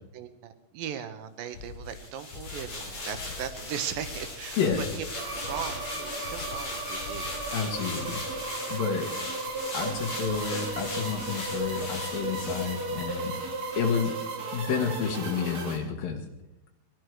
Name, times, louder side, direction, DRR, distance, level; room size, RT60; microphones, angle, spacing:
voice 1, 0.1-5.1 5.5-7.5, right 9 dB, 90° right, 9 dB, 2.7 m, -38 dB
sound 1, 1.5-7.6, left 5 dB, 70° left, 1.2 m, -45 dB
sound 2, 1.9-13.4 13.8-13.9, left 2 dB, 40° left, 4.1 m, -39 dB
voice 2, 4.6-4.9 7.5-8.2 8.7-9.1 9.7-13.3 13.8-14.1 14.5-16.2, left 6 dB, 85° left, 0 dB, 3.4 m, -30 dB
sound 3, 5.1-15.8, right 2 dB, 50° right, 4.4 m, -35 dB
21.0 x 14.0 x 4.7 m, 0.86 s
omnidirectional pair, 3.9 m